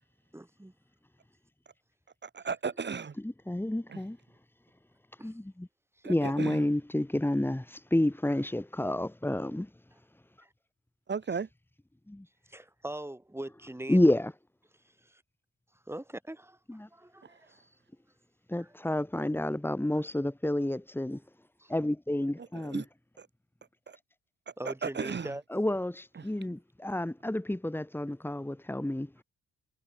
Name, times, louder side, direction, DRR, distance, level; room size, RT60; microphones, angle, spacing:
voice 1, 0.3-0.7 5.2-5.4 10.4-10.5 12.5-14.1 15.0-15.2 15.9-17.6 18.6-18.7 21.6-21.7 24.6-25.4, right 1 dB, 10° right, 7.6 m, -42 dB
voice 2, 2.2-3.1 3.9-4.0 6.0-6.7 11.1-11.5 17.2-17.3 22.4-22.9 23.2-23.3 23.9-24.0 24.6-25.3 26.2-26.3, right 5 dB, 35° right, 3.1 m, -35 dB
voice 3, 3.2-4.2 5.2-5.7 6.0-9.7 12.1-12.3 13.9-14.3 16.7-16.9 18.5-21.2 21.7-22.8 25.5-29.1, left 1 dB, 5° left, 5.2 m, -30 dB
cardioid pair, 90°, 30 cm